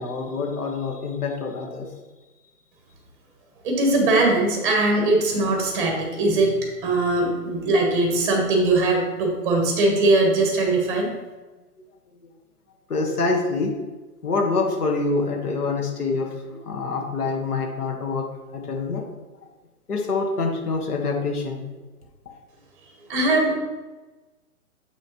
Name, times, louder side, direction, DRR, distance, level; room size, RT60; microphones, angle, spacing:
voice 1, 0.0-1.9 12.2-12.3 12.9-13.7 14.2-18.2 18.5-19.0 19.9-21.6, left 3 dB, 80° left, 1 dB, 1.6 m, -26 dB
voice 2, 3.6-11.1 23.1-23.5, right 2 dB, 5° right, 0 dB, 0.8 m, -21 dB
7.1 x 6.2 x 3.1 m, 1.2 s
hypercardioid pair, 150°, 45 cm